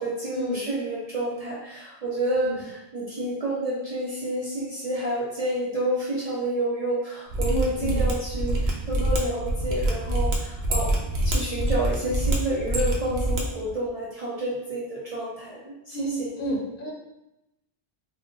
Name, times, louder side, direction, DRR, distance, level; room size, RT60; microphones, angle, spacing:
voice 1, 0.0-16.5, right 1 dB, 50° right, -6 dB, 0.5 m, -29 dB
Mechanisms, 7.3-13.4 13.7-13.8, right 1 dB, 75° right, 0.8 m, -25 dB
voice 2, 7.5-8.0 15.9-16.9, equal, 60° left, -2 dB, 0.7 m, -31 dB
2.4 x 2.0 x 3.6 m, 0.90 s
omnidirectional pair, 1.1 m